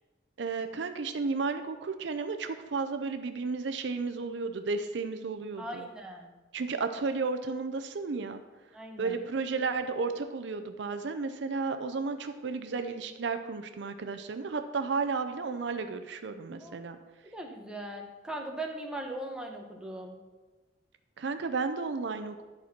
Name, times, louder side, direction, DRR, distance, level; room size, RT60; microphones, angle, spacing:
voice 1, 0.4-5.9 6.5-8.4 9.0-17.0 21.2-22.4, right 4 dB, 65° right, 8 dB, 0.5 m, -33 dB
voice 2, 5.6-6.3 8.7-9.2 16.6-16.7 17.2-20.2, right 1 dB, 5° right, 1 dB, 0.9 m, -39 dB
11.0 x 4.3 x 5.9 m, 1.2 s
head